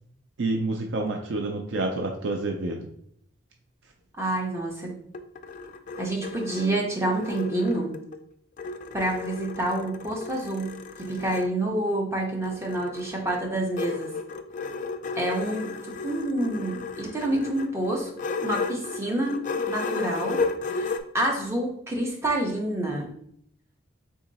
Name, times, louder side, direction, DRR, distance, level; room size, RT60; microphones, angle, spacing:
voice 1, 0.4-2.9, right 2 dB, 75° right, 3 dB, 0.5 m, -28 dB
voice 2, 4.2-5.0 6.0-7.9 8.9-14.1 15.2-18.1 18.4-20.4 20.7-23.1, right 1 dB, 15° right, -1 dB, 0.9 m, -28 dB
sound 1, 4.9-8.2 8.6-11.5 12.4-21.0, left 4 dB, 45° left, 0.3 m, -33 dB
3.7 x 2.9 x 4.0 m, 0.68 s
head